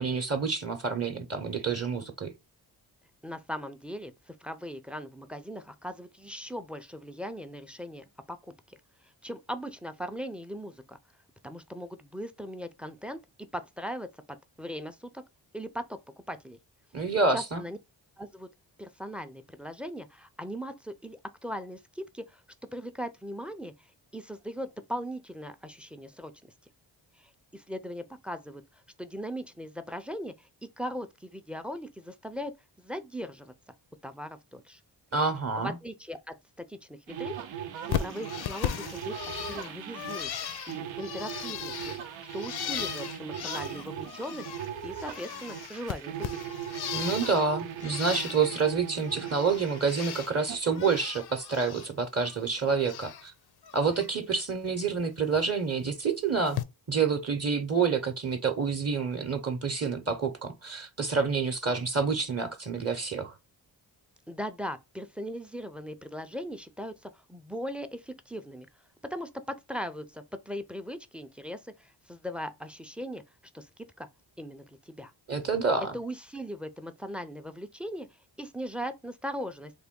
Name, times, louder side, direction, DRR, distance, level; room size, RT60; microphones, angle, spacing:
voice 1, 0.0-2.3 16.9-17.6 35.1-35.8 46.9-53.3 53.7-56.6 56.9-63.4 75.3-75.9, right 5 dB, 35° right, 0.7 m, -28 dB
voice 2, 3.2-8.4 8.7-8.8 9.2-11.0 11.4-13.2 13.5-15.2 15.5-16.0 16.3-16.6 17.3-17.8 18.2-18.5 18.8-22.4 22.7-23.7 24.1-26.3 27.2-28.6 29.0-30.5 30.8-32.5 32.8-33.5 34.0-34.8 35.6-40.3 40.7-44.5 44.8-46.3 64.3-68.7 69.1-73.2 73.5-74.1 74.4-75.1 75.9-78.1 78.4-79.7, equal, 5° right, 0.4 m, -39 dB
sound 1, 37.1-50.6, right 9 dB, 90° right, 0.6 m, -39 dB
Bird, 37.9-44.7 44.9-47.5 47.8-48.6 49.0-50.3 50.6-51.9 52.2-53.3 53.6-54.1 55.3-55.5 56.5-56.6, left 10 dB, 60° left, 0.5 m, -37 dB
3.5 x 2.2 x 3.6 m
cardioid pair, 65°, 45 cm